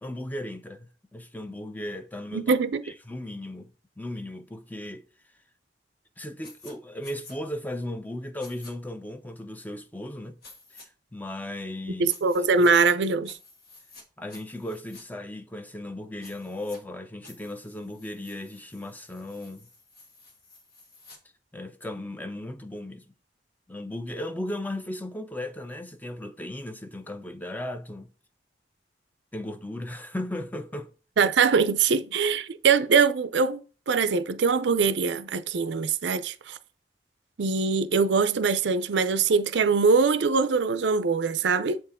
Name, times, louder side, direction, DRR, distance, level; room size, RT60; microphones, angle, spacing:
voice 1, 0.0-2.6 2.8-3.7 4.0-5.0 6.2-10.3 10.7-10.8 11.1-12.1 14.2-19.7 21.5-23.1 23.7-28.1 29.3-30.9, left 1 dB, 10° left, 0.6 m, -36 dB
voice 2, 2.3-2.9 12.0-13.4 31.2-36.6 37.4-41.8, right 5 dB, 85° right, 0.5 m, -23 dB
sound 1, 6.4-6.7 7.0-7.4 8.4-8.7 10.4-10.9 12.1-12.7 13.2-14.0 14.3-15.0 16.2-16.8 17.2-21.2, left 3 dB, 60° left, 1.5 m, -51 dB
7.5 x 4.5 x 3.6 m
head